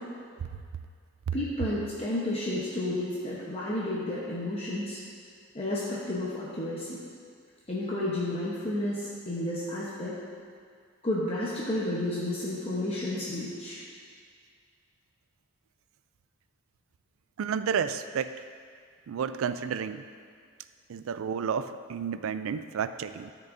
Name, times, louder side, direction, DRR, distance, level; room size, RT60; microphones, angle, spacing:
voice 1, 1.3-5.0 5.5-7.0 7.7-10.1 11.0-13.8, left 1 dB, 30° left, -6 dB, 0.9 m, -31 dB
voice 2, 17.4-18.4 19.1-20.0 20.9-23.3, right 7 dB, 85° right, 12 dB, 0.3 m, -31 dB
13.0 x 6.1 x 2.6 m, 2.1 s
head